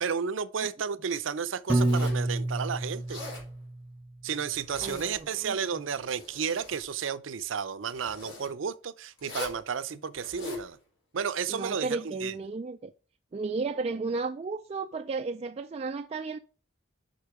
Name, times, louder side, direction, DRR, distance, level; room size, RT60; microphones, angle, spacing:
voice 1, 0.0-3.2 4.2-10.8 11.1-12.3, right 6 dB, 90° right, 0.6 m, -32 dB
Zipper (clothing), 1.7-2.3 2.9-3.5 4.5-5.4 5.8-6.8 7.9-8.5 9.2-9.6 10.1-10.7, left 2 dB, 75° left, 4.2 m, -42 dB
Piano, 1.7-3.9, right 2 dB, 10° right, 1.0 m, -28 dB
voice 2, 4.8-5.6 11.5-12.9 13.3-16.4, right 4 dB, 30° right, 0.3 m, -33 dB
6.6 x 5.4 x 4.8 m
head